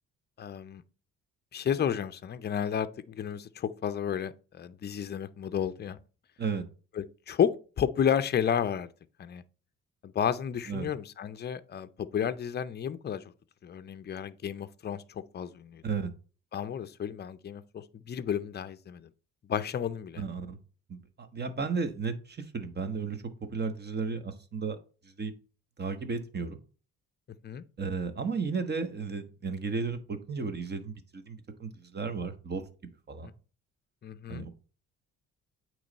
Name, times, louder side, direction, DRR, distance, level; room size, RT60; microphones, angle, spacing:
voice 1, 0.4-0.8 1.5-6.0 7.0-7.5 7.8-8.9 9.2-9.4 10.0-13.3 13.6-15.8 16.5-19.1 19.5-20.2 27.4-27.6 33.2-33.3 34.0-34.4, left 8 dB, 35° left, 0.5 m, -32 dB
voice 2, 20.2-20.6 20.9-23.2 23.5-24.8 25.2-25.3 25.8-26.6 27.8-32.6 33.1-33.3 34.3-34.5, right 5 dB, 35° right, 1.1 m, -34 dB
8.6 x 3.2 x 4.0 m
cardioid pair, 90°, 30 cm